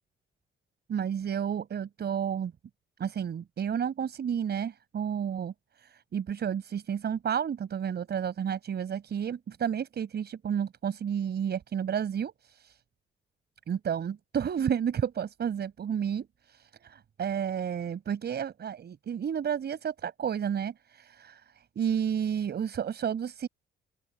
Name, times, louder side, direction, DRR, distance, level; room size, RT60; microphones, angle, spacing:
voice 1, 0.9-2.5 3.0-5.5 5.8-12.7 13.7-21.4 21.7-23.5, right 8 dB, 55° right, 5.1 m, -31 dB
open air
cardioid pair, 90°, 20 cm